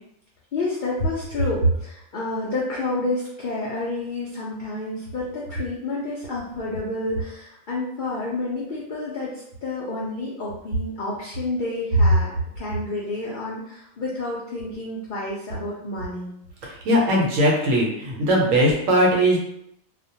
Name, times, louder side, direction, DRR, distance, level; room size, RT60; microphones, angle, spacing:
voice 1, 0.5-16.3, left 2 dB, 90° left, -5 dB, 0.4 m, -30 dB
voice 2, 16.6-19.4, equal, 70° right, -2 dB, 1.0 m, -19 dB
2.4 x 2.1 x 2.7 m, 0.75 s
omnidirectional pair, 1.4 m